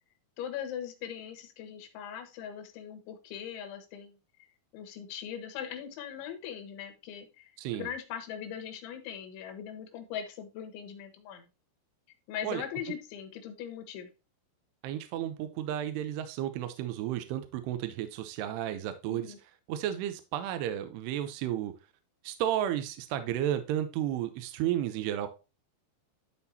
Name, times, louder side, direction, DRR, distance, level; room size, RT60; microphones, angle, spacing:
voice 1, 0.4-4.2 4.7-11.5 12.3-14.1 19.1-19.4, left 9 dB, 75° left, 6 dB, 3.4 m, -40 dB
voice 2, 7.6-7.9 12.4-12.6 14.8-21.7 22.2-25.3, right 11 dB, 80° right, 9 dB, 2.4 m, -33 dB
12.5 x 4.3 x 2.7 m, 0.30 s
omnidirectional pair, 5.6 m